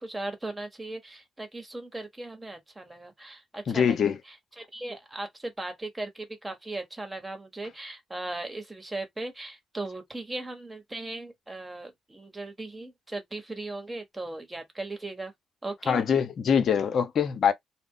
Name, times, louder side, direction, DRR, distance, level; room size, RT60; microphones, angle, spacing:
voice 1, 0.0-15.3 15.6-16.0, right 2 dB, 20° right, 1.3 m, -38 dB
voice 2, 3.7-4.2 15.9-17.5, left 7 dB, 60° left, 0.7 m, -23 dB
2.3 x 2.3 x 3.6 m
supercardioid pair, 60°, 0 cm